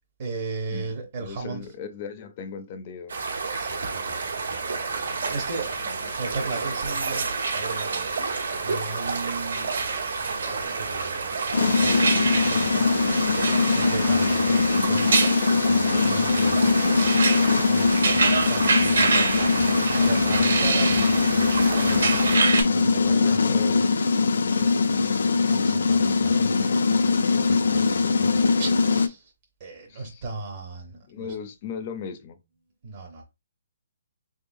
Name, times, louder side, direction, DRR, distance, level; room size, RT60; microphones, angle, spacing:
voice 1, 0.2-1.6 3.5-8.1 8.6-9.8 10.1-15.1 15.7-17.0 17.6-22.2 22.6-23.6 25.5-29.3 29.6-31.3 32.8-33.2, right 3 dB, 35° right, 0.7 m, -37 dB
voice 2, 1.2-3.1 5.8-6.1 19.8-20.2 21.7-22.1 23.0-24.2 24.6-24.8 29.9-30.2 31.1-32.4, left 6 dB, 25° left, 0.5 m, -38 dB
sound 1, 3.1-22.4, right 4 dB, 90° right, 1.3 m, -31 dB
sound 2, 5.1-22.6, right 4 dB, 65° right, 1.4 m, -29 dB
sound 3, 11.5-29.1, left 4 dB, 75° left, 0.5 m, -22 dB
3.7 x 3.6 x 2.5 m
hypercardioid pair, 175°, 0 cm